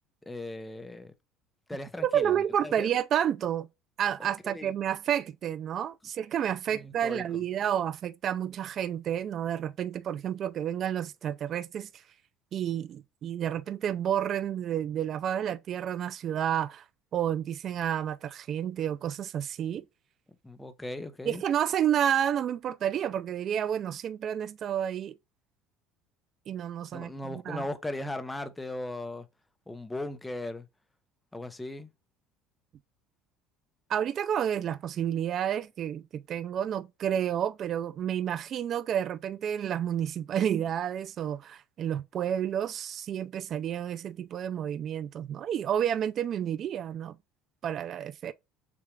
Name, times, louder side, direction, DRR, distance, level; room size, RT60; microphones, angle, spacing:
voice 1, 0.3-1.1 1.7-2.9 4.2-4.7 6.7-7.2 20.4-21.4 26.9-29.3 29.7-30.7 31.3-31.9, left 1 dB, 10° left, 0.7 m, -38 dB
voice 2, 2.0-3.7 4.0-11.9 12.5-16.8 17.1-19.8 21.3-25.2 26.5-27.7 33.9-47.2 47.6-48.3, right 9 dB, 40° right, 0.4 m, -30 dB
6.7 x 2.4 x 3.1 m
cardioid pair, 135°, 0 cm